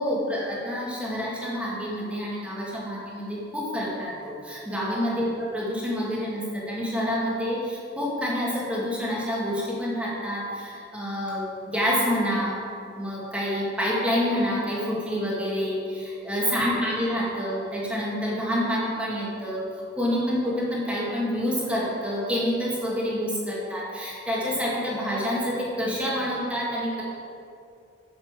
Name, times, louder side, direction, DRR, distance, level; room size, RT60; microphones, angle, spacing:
voice 1, 0.0-12.6 13.0-27.0, equal, 5° right, -6 dB, 1.8 m, -28 dB
7.9 x 5.9 x 6.6 m, 2.5 s
head